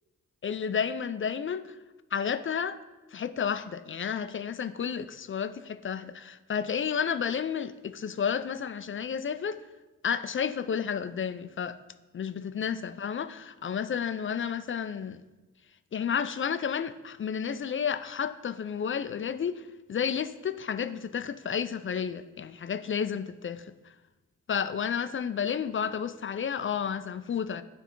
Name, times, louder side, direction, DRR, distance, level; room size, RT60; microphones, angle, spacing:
voice 1, 0.4-1.7 2.1-2.8 3.1-9.6 10.0-11.8 12.1-15.2 15.9-19.6 19.9-23.6 24.5-27.6, left 7 dB, 40° left, 12 dB, 0.4 m, -31 dB
9.2 x 3.4 x 4.5 m, 1.1 s
cardioid pair, 65°, 32 cm